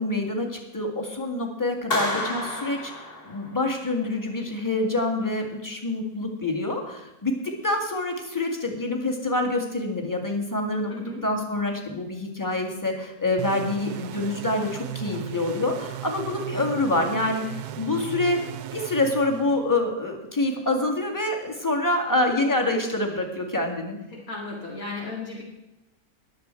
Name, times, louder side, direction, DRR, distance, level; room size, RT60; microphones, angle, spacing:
voice 1, 0.0-10.9 11.2-18.4 18.7-24.0, left 2 dB, 10° left, 2 dB, 1.9 m, -26 dB
Clapping, 1.9-3.8, left 1 dB, 35° left, 3.2 m, -30 dB
voice 2, 10.9-11.2 24.1-25.4, left 3 dB, 60° left, -3 dB, 2.5 m, -35 dB
sound 1, 13.4-19.9, right 12 dB, 80° right, 1.2 m, -36 dB
21.0 x 7.6 x 4.5 m, 0.92 s
omnidirectional pair, 1.6 m